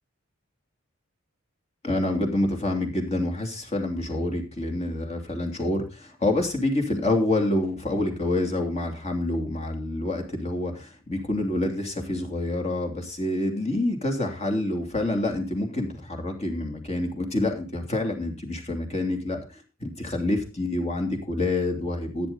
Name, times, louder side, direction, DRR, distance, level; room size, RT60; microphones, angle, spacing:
voice 1, 1.8-22.3, left 1 dB, 30° left, 4 dB, 2.9 m, -27 dB
15.5 x 9.7 x 4.0 m, 0.31 s
head